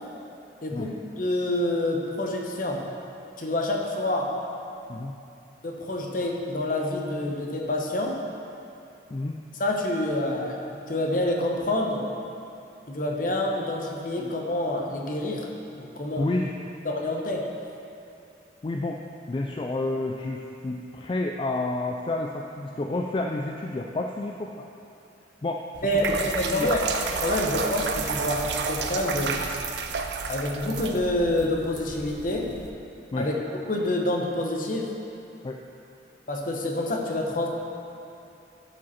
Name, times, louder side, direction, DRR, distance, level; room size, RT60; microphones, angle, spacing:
voice 1, 0.6-2.8 3.4-4.3 5.6-8.2 9.6-12.1 12.9-15.5 15.8-16.3 16.8-17.5 25.8-26.9 27.2-29.4 30.3-32.5 33.2-34.9 36.3-37.5, left 1 dB, 50° left, 0 dB, 0.9 m, -27 dB
voice 2, 16.2-16.5 18.6-19.0 19.3-24.5 25.4-26.2 26.5-26.7 33.1-33.3 35.4-35.6, left 2 dB, 30° left, 1 dB, 0.3 m, -30 dB
sound 1, 25.7-32.7, right 5 dB, 80° right, 0.5 m, -31 dB
11.0 x 5.2 x 4.2 m, 2.8 s
head